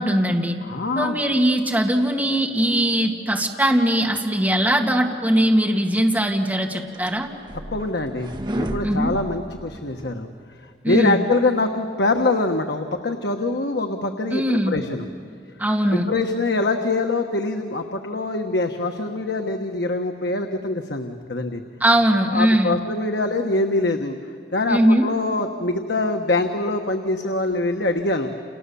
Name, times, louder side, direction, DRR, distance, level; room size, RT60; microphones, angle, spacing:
voice 1, 0.0-0.6 1.0-7.3 8.8-9.2 10.8-11.2 14.3-14.8 15.6-16.1 21.8-22.8 24.7-25.1, right 1 dB, 10° right, 1 dB, 2.0 m, -20 dB
voice 2, 0.6-1.1 7.7-10.3 10.6-15.1 15.9-21.6 22.3-24.2 24.5-28.3, left 2 dB, 80° left, 4 dB, 1.3 m, -24 dB
sound 1, 6.5-10.1, equal, 25° right, 1.2 m, -32 dB
30.0 x 28.5 x 7.0 m, 2.2 s
head